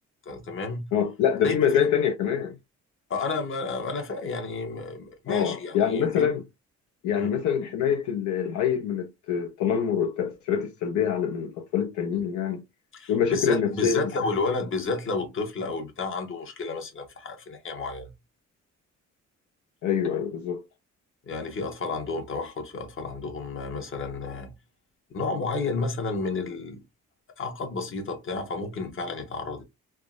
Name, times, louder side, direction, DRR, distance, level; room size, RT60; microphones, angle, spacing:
voice 1, 0.3-0.9 1.4-1.9 3.1-6.3 7.1-7.3 12.9-18.1 21.3-24.5 25.1-26.8 27.4-29.6, left 3 dB, 45° left, 1.0 m, -31 dB
voice 2, 0.9-2.6 5.3-6.4 7.0-12.6 13.1-14.1 19.8-20.6, left 8 dB, 70° left, 0.6 m, -25 dB
3.4 x 2.1 x 2.4 m
cardioid pair, 90°, 30 cm